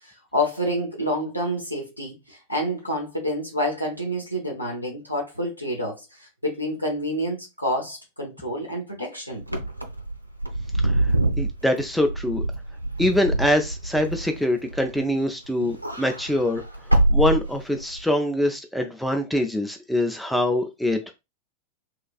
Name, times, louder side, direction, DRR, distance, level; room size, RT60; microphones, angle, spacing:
voice 1, 0.0-9.4 11.1-11.2, equal, 90° left, 0.8 m, -28 dB
Wind / Car, 9.4-15.2 15.6-18.0, right 1 dB, 85° right, 0.4 m, -25 dB
voice 2, 11.4-12.4 13.0-16.6 16.9-21.1, left 1 dB, ahead, 0.3 m, -24 dB
3.0 x 2.3 x 2.3 m
figure-of-eight pair, 90°, 0 cm